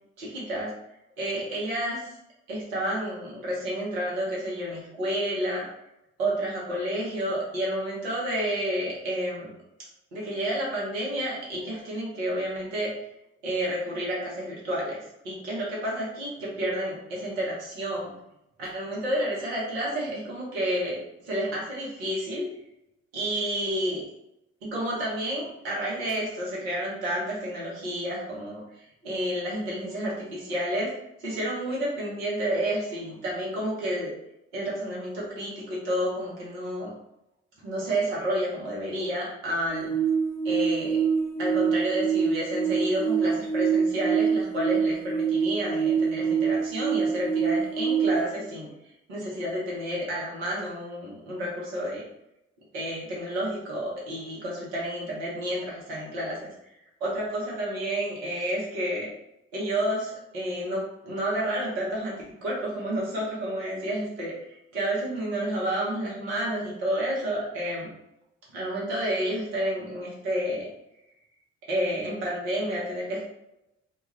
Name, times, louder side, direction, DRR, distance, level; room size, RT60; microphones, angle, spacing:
voice 1, 0.2-0.7 1.2-2.2 2.5-5.6 6.2-9.5 10.1-12.9 13.4-15.0 15.2-18.1 18.6-22.5 23.1-24.0 24.6-30.9 31.2-34.1 34.5-36.9 37.6-39.9 40.4-41.0 41.4-48.7 49.1-52.0 52.7-56.5 57.0-59.1 59.5-62.1 62.4-67.9 68.5-70.7 71.7-73.2, equal, 85° right, -5 dB, 0.9 m, -30 dB
sound 1, 39.7-48.2, right 6 dB, 90° left, 0.8 m, -25 dB
2.4 x 2.3 x 3.1 m, 0.86 s
hypercardioid pair, 45°, 33 cm